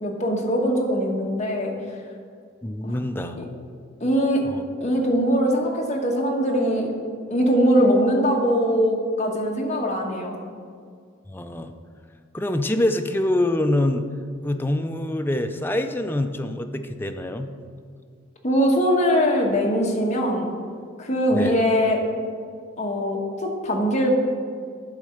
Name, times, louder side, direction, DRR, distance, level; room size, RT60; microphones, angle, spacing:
voice 1, 0.0-1.7 2.8-2.9 3.4-3.5 4.0-4.4 4.8-6.9 7.3-10.3 18.4-20.5 21.0-22.0 22.8-24.1, equal, 35° left, 0 dB, 1.3 m, -21 dB
voice 2, 2.6-3.4 4.5-4.6 11.3-11.7 12.3-14.0 14.4-17.5 21.3-21.6, left 1 dB, 10° left, 6 dB, 0.4 m, -25 dB
11.0 x 4.2 x 6.4 m, 2.1 s
head